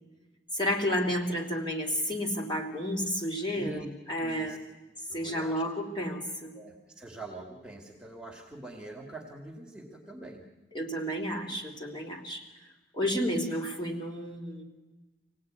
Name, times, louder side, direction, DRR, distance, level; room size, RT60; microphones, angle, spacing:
voice 1, 0.5-4.6 5.1-6.5 10.7-12.4 12.9-14.6, equal, 25° left, 1 dB, 3.2 m, -31 dB
voice 2, 3.5-3.9 4.2-4.6 5.1-5.6 6.5-10.4, right 2 dB, 5° right, 0 dB, 2.3 m, -44 dB
25.5 x 17.5 x 9.6 m, 1.2 s
head